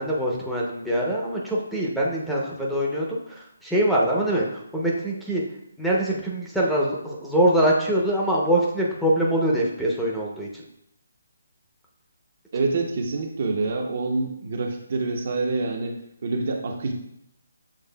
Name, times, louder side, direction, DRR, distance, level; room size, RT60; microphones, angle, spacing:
voice 1, 0.0-3.2 3.6-4.5 4.7-5.4 5.8-10.5, right 1 dB, ahead, -5 dB, 0.6 m, -23 dB
voice 2, 12.5-16.0 16.2-16.9, right 3 dB, 50° right, 2 dB, 0.7 m, -26 dB
7.3 x 3.2 x 2.2 m, 0.77 s
figure-of-eight pair, 155°, 0 cm